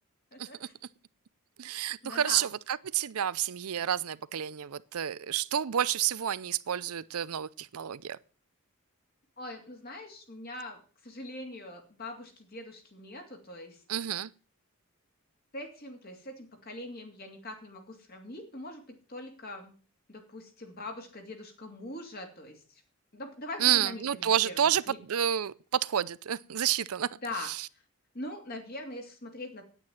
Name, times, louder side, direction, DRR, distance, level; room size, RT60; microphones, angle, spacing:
voice 1, 0.3-0.7 2.0-2.5 9.4-13.8 15.5-18.8 19.1-19.7 20.1-22.8 23.1-25.0 27.2-27.5 28.1-29.7, left 2 dB, 45° left, 2.8 m, -42 dB
voice 2, 1.6-8.2 13.9-14.3 23.6-24.8 25.1-27.1, right 10 dB, 75° right, 0.5 m, -29 dB
9.5 x 9.0 x 7.2 m
head